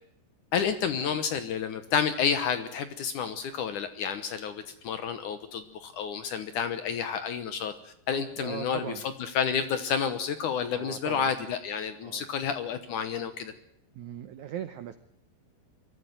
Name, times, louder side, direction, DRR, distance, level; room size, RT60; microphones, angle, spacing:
voice 1, 0.5-8.9 9.3-13.5, left 7 dB, 65° left, 10 dB, 2.1 m, -30 dB
voice 2, 8.4-9.0 10.7-11.3 12.0-12.3 13.9-14.9, right 10 dB, 80° right, 11 dB, 1.7 m, -39 dB
23.0 x 14.0 x 9.2 m, 0.72 s
omnidirectional pair, 4.7 m